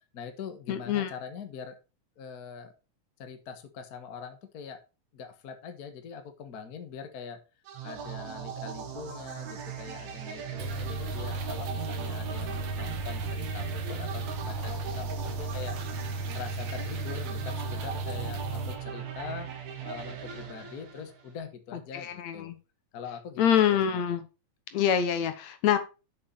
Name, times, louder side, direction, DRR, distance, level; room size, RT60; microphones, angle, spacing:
voice 1, 0.1-1.8 2.2-2.7 3.2-4.8 5.1-7.4 7.8-15.8 16.3-19.5 19.8-22.5 22.9-24.0, left 6 dB, 45° left, 1.3 m, -43 dB
voice 2, 0.7-1.1 21.9-22.6 23.4-24.2 24.7-25.8, left 9 dB, 75° left, 2.3 m, -25 dB
sound 1, 7.7-21.3, right 7 dB, 75° right, 2.9 m, -40 dB
sound 2, 10.6-18.7, right 3 dB, 55° right, 1.6 m, -35 dB
7.2 x 6.5 x 5.1 m
omnidirectional pair, 3.3 m